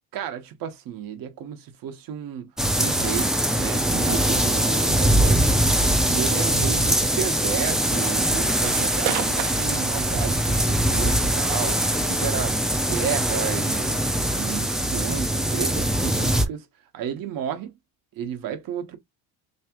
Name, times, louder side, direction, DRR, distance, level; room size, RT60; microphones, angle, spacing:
voice 1, 0.1-2.5 2.8-5.5 6.0-14.0 14.3-16.7 16.9-17.7 18.1-19.0, right 9 dB, 55° right, 1.3 m, -32 dB
sound 1, 2.6-16.5, right 1 dB, ahead, 0.5 m, -22 dB
sound 2, 8.6-16.4, right 11 dB, 85° right, 1.1 m, -38 dB
3.5 x 3.2 x 3.0 m
cardioid pair, 145°, 40 cm